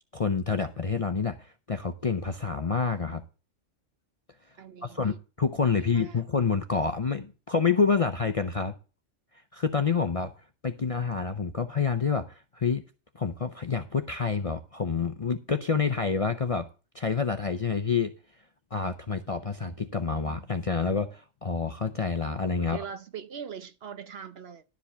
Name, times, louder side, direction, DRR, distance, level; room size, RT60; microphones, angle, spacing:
voice 1, 0.1-3.2 4.8-8.7 9.5-10.3 10.6-12.8 13.1-16.7 16.9-18.1 18.7-22.8, left 5 dB, 40° left, 0.6 m, -28 dB
voice 2, 4.6-5.2 5.7-6.2 22.6-24.6, right 7 dB, 60° right, 0.9 m, -41 dB
12.0 x 5.1 x 6.6 m
omnidirectional pair, 1.3 m